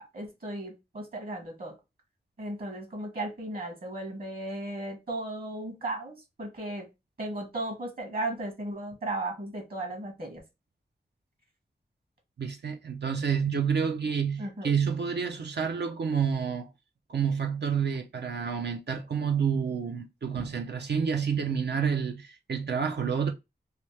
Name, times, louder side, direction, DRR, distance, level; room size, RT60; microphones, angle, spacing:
voice 1, 0.1-1.7 2.4-6.9 7.2-10.4 14.4-14.7, right 2 dB, 55° right, 1.4 m, -35 dB
voice 2, 12.4-16.7 17.1-23.3, right 6 dB, 75° right, 0.5 m, -29 dB
3.3 x 2.7 x 3.2 m
wide cardioid pair, 80°, 18 cm